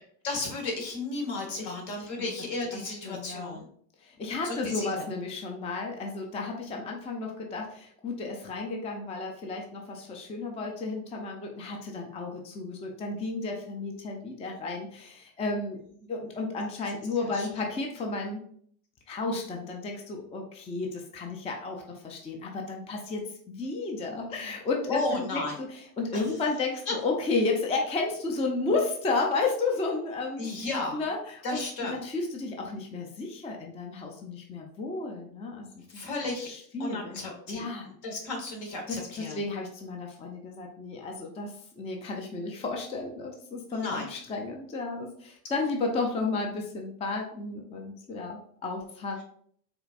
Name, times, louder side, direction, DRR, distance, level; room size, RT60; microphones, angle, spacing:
voice 1, 0.2-3.7 4.4-5.0 17.2-17.5 24.3-24.5 24.9-25.5 26.1-26.2 26.9-27.0 30.4-31.0 31.4-32.0 35.9-36.5 36.8-39.4 43.7-44.1, left 2 dB, 60° left, 1 dB, 1.5 m, -34 dB
voice 2, 2.0-2.3 2.7-3.6 4.0-15.8 16.1-18.4 19.1-30.5 30.9-31.6 31.9-36.0 36.4-37.2 37.5-37.9 38.9-49.2, left 3 dB, 15° left, 1 dB, 0.4 m, -33 dB
4.4 x 2.5 x 2.5 m, 0.62 s
hypercardioid pair, 95°, 49 cm